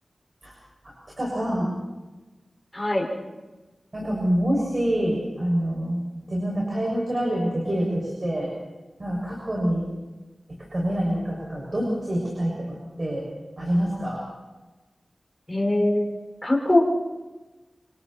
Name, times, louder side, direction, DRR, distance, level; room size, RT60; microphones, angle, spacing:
voice 1, 1.2-1.7 3.9-8.5 9.0-9.8 10.7-13.3 13.6-14.2, equal, 40° right, -3 dB, 6.6 m, -26 dB
voice 2, 2.7-3.1 15.5-16.1 16.4-16.8, left 1 dB, 15° left, -2 dB, 5.4 m, -21 dB
27.5 x 25.5 x 4.4 m, 1.2 s
wide cardioid pair, 95°, 0 cm